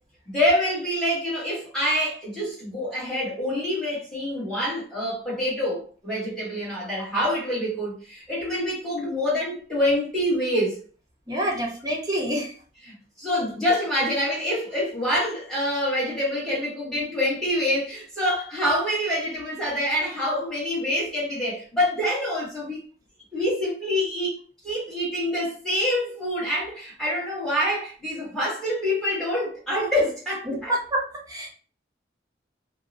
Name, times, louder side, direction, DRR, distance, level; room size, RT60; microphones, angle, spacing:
voice 1, 0.3-10.8 12.8-22.8 23.3-24.4 24.6-30.7, left 1 dB, 5° left, 1.2 m, -26 dB
voice 2, 11.3-12.5 30.5-31.5, right 1 dB, 20° right, 0.6 m, -27 dB
2.7 x 2.0 x 2.5 m
head